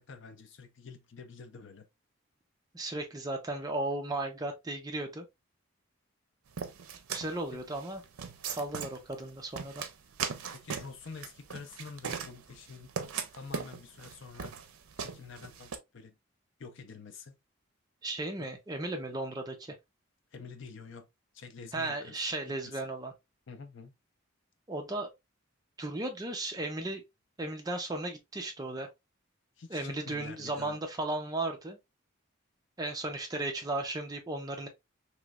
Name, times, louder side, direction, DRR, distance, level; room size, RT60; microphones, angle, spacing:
voice 1, 0.0-1.9 7.5-7.6 10.5-12.9 13.3-14.6 15.0-16.2 16.6-17.4 18.4-18.5 20.3-21.1 21.3-22.2 22.5-22.8 23.5-24.0 29.6-30.8, left 4 dB, 60° left, 0.5 m, -47 dB
voice 2, 2.7-5.3 7.1-8.0 8.4-9.8 18.0-19.8 21.7-23.1 24.7-25.1 25.8-27.0 27.4-28.9 29.7-31.8 32.8-34.7, right 2 dB, 20° right, 0.5 m, -35 dB
sound 1, 6.6-15.8, right 6 dB, 90° right, 0.5 m, -39 dB
3.1 x 3.0 x 2.3 m
head